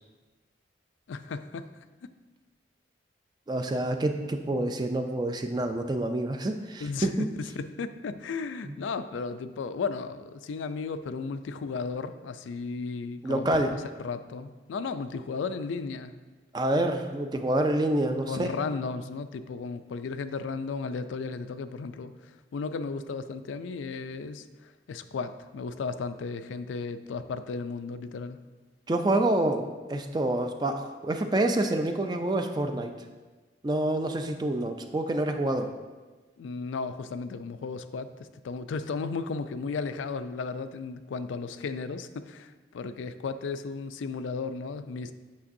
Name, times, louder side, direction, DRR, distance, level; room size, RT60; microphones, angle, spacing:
voice 1, 1.1-1.7 2.0-2.1 6.8-16.1 18.3-28.4 36.4-45.1, left 4 dB, 85° left, 11 dB, 0.4 m, -35 dB
voice 2, 3.5-7.3 8.6-8.8 13.2-13.7 16.5-18.5 28.9-32.9 33.6-35.7, right 1 dB, 20° right, 6 dB, 0.3 m, -27 dB
8.4 x 6.0 x 2.6 m, 1.3 s
head